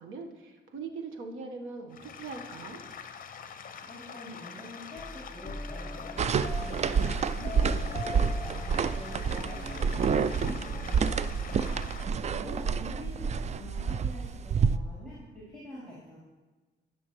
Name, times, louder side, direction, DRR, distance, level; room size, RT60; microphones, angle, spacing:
voice 1, 0.0-2.8 12.1-12.6, right 4 dB, 80° right, 3 dB, 1.3 m, -41 dB
sound 1, 1.9-12.0, left 7 dB, 45° left, 0.7 m, -45 dB
sound 2, 3.7-4.0 5.0-11.3, left 3 dB, 25° left, 1.1 m, -43 dB
voice 2, 3.9-11.8 12.2-16.2, left 1 dB, 5° left, -8 dB, 3.6 m, -46 dB
sound 3, 6.2-14.8, right 6 dB, 35° right, 0.4 m, -28 dB
18.0 x 6.3 x 3.1 m, 1.2 s
cardioid pair, 90°, 20 cm